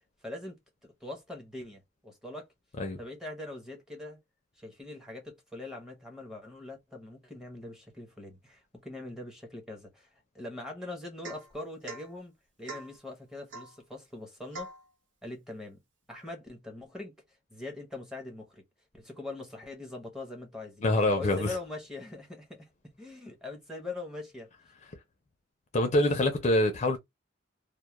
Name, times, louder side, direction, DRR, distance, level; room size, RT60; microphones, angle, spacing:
voice 1, 0.2-2.5 3.0-4.2 4.6-12.3 12.6-14.7 15.2-15.8 16.1-17.1 17.5-18.6 18.9-20.9 21.2-24.5, left 2 dB, 5° right, 0.7 m, -42 dB
Domestic sounds home sounds / Chink clink / Drip, 11.2-11.5 11.8-12.1 12.7-13.0 13.5-13.8 14.5-14.8, right 3 dB, 65° right, 0.8 m, -42 dB
voice 2, 20.8-21.6 25.7-27.0, left 1 dB, 35° left, 0.5 m, -25 dB
2.2 x 2.1 x 2.9 m
head